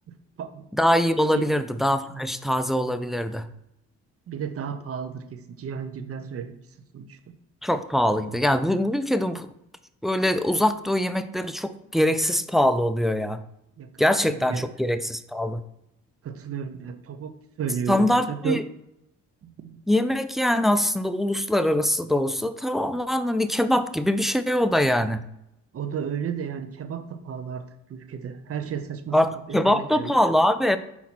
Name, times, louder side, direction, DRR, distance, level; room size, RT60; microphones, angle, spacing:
voice 1, 0.1-0.7 1.3-1.5 4.3-6.5 6.9-7.2 13.8-13.9 14.2-14.6 16.2-18.6 19.4-19.8 25.7-27.6 27.9-30.1, right 7 dB, 50° right, 9 dB, 0.7 m, -33 dB
voice 2, 0.7-3.5 7.6-9.5 10.0-13.4 14.0-15.6 17.9-18.6 19.9-25.2 29.1-30.8, left 1 dB, ahead, 10 dB, 0.3 m, -23 dB
5.9 x 4.2 x 4.1 m, 0.82 s
cardioid pair, 90°, 30 cm